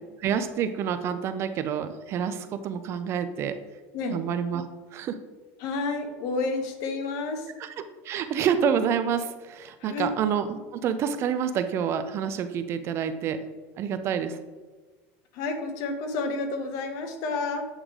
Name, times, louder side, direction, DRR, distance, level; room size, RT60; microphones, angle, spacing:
voice 1, 0.0-3.6 4.1-4.6 4.9-5.2 7.6-13.4 13.8-14.4, right 7 dB, 40° right, 10 dB, 0.4 m, -28 dB
voice 2, 5.6-7.5 9.8-10.1 15.3-17.7, left 3 dB, 60° left, 6 dB, 0.9 m, -30 dB
8.0 x 3.2 x 3.7 m, 1.3 s
supercardioid pair, 130°, 7 cm